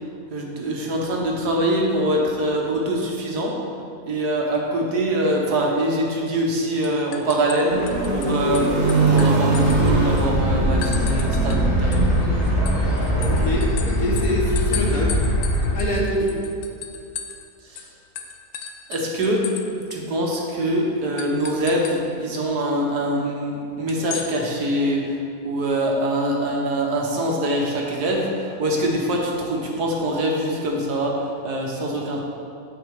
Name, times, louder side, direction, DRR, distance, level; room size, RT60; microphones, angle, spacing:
voice 1, 0.3-3.6 4.1-12.1 17.6-17.9 18.9-19.5 19.9-32.2, right 1 dB, 70° right, -1 dB, 1.8 m, -24 dB
sound 1, 6.3-6.5 6.8-8.3 8.5-10.3 10.8-11.6 11.9-17.5 17.8-17.9 18.2-19.6 19.9-20.0 20.3-20.5 21.2-22.0 23.9-24.3, left 8 dB, 85° left, 1.4 m, -35 dB
sound 2, 7.7-13.5, right 3 dB, 30° right, 0.9 m, -22 dB
sound 3, 9.6-15.8, left 1 dB, 40° left, 1.0 m, -23 dB
voice 2, 13.1-15.2 15.7-16.5, left 1 dB, 55° left, -3 dB, 2.0 m, -25 dB
8.4 x 7.5 x 4.8 m, 2.4 s
omnidirectional pair, 1.8 m